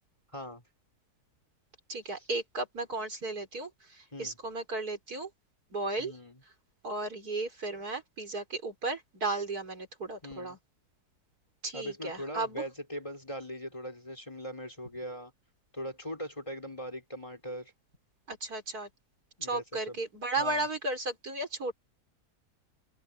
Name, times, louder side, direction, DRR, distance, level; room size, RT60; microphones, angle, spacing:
voice 1, 0.3-0.6 2.1-2.3 4.1-4.4 6.0-6.4 10.2-10.6 11.7-15.3 15.7-17.7 19.4-20.0 20.4-20.7, equal, 20° left, 4.5 m, -40 dB
voice 2, 1.9-5.3 5.7-6.1 6.8-10.6 11.6-12.6 18.3-18.9 19.4-21.7, right 2 dB, 70° right, 4.8 m, -34 dB
open air
omnidirectional pair, 1.7 m